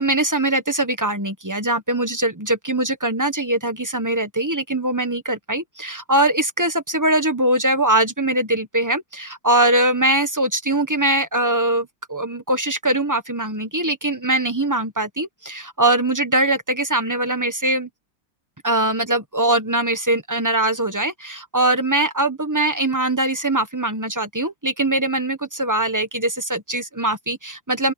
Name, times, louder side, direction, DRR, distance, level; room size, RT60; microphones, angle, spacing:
voice 1, 0.0-17.9 18.6-27.9, right 1 dB, 10° right, 1.2 m, -22 dB
open air
omnidirectional pair, 2.0 m